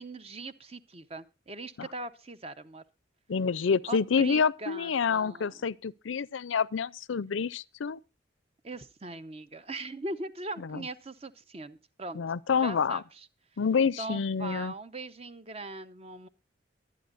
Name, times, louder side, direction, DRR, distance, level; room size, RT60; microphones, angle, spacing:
voice 1, 0.0-2.8 3.9-5.7 8.6-12.2 12.6-13.3 14.0-16.3, right 2 dB, 30° right, 0.8 m, -40 dB
voice 2, 3.3-8.0 10.7-10.8 12.1-13.0 13.6-14.7, left 6 dB, 80° left, 0.5 m, -28 dB
23.0 x 9.0 x 2.5 m
head